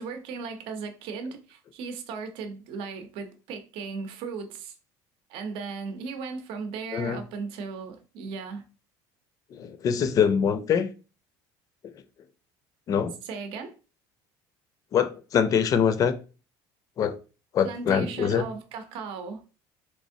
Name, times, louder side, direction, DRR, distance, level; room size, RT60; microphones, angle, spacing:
voice 1, 0.0-4.8 5.3-8.6 13.2-13.7 17.6-19.4, right 5 dB, 70° right, 0.7 m, -36 dB
voice 2, 9.5-10.9 11.9-12.0 12.9-13.1 14.9-16.1 17.0-17.2 17.5-18.4, left 7 dB, 40° left, 0.4 m, -24 dB
3.4 x 3.1 x 2.6 m
cardioid pair, 130°, 9 cm